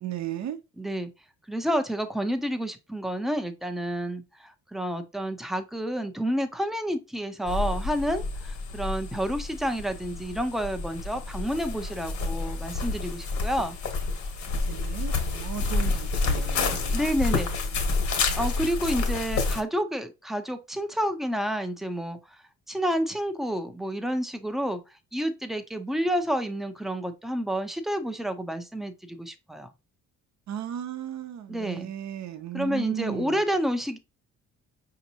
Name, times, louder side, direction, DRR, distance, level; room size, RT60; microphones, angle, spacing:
voice 1, 0.0-0.6 14.7-17.0 30.5-33.4, right 10 dB, 65° right, 0.7 m, -35 dB
voice 2, 0.8-1.1 1.5-13.8 16.9-17.5 18.4-22.2 22.7-24.8 25.1-29.7 31.5-31.9 32.5-34.0, equal, ahead, 0.5 m, -29 dB
sound 1, 7.5-19.6, left 3 dB, 70° left, 1.5 m, -29 dB
5.1 x 2.8 x 2.7 m
cardioid pair, 90°, 30 cm